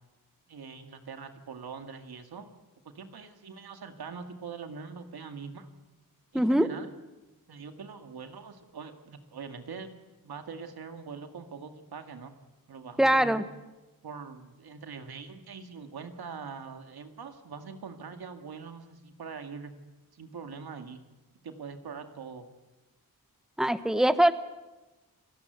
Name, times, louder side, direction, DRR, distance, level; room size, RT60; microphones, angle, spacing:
voice 1, 0.5-2.5 2.9-5.7 6.3-6.9 7.5-9.9 10.2-12.3 12.7-13.4 14.0-19.7 20.1-21.0 21.4-22.5, right 5 dB, 85° right, 7 dB, 2.1 m, -43 dB
voice 2, 6.3-6.7 13.0-13.4 23.6-24.3, right 1 dB, ahead, 12 dB, 1.1 m, -22 dB
29.0 x 17.5 x 8.1 m, 1.1 s
wide cardioid pair, 115°, 37 cm